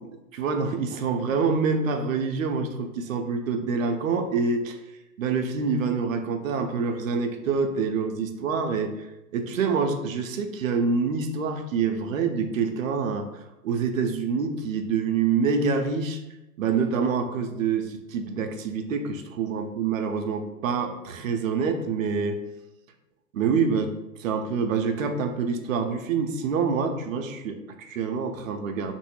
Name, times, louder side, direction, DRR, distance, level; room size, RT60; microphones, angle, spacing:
voice 1, 0.0-4.8 5.2-9.1 9.3-13.3 13.6-16.2 16.6-22.4 23.3-23.9 24.2-28.9, right 5 dB, 55° right, 6 dB, 0.5 m, -26 dB
2.6 x 2.6 x 3.1 m, 0.97 s
figure-of-eight pair, 110°, 49 cm